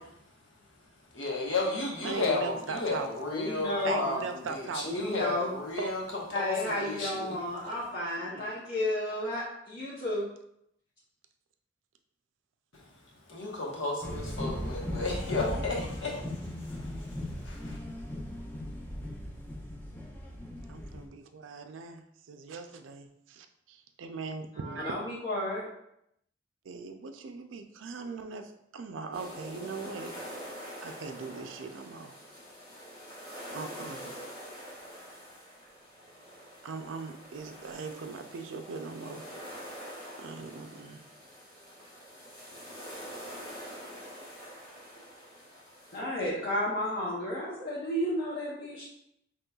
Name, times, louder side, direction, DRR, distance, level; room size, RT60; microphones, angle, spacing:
voice 1, 1.1-6.0 6.3-7.4 12.7-12.8 13.3-16.2 16.6-17.8, left 3 dB, 80° left, -3 dB, 1.0 m, -33 dB
voice 2, 2.0-3.1 3.8-5.0 5.8-6.0 8.3-8.6 20.7-24.9 26.6-30.2 30.8-32.1 33.5-34.1 36.6-39.2 40.2-41.0, right 4 dB, 80° right, 7 dB, 0.4 m, -40 dB
voice 3, 3.2-3.9 4.8-5.5 6.3-10.2 24.8-25.7 45.9-48.9, left 1 dB, 60° left, -8 dB, 0.9 m, -32 dB
sound 1, 14.0-21.1, left 1 dB, 10° left, 0.6 m, -38 dB
sound 2, 29.1-46.0, equal, 30° left, 1.1 m, -45 dB
5.3 x 3.0 x 2.3 m, 0.77 s
head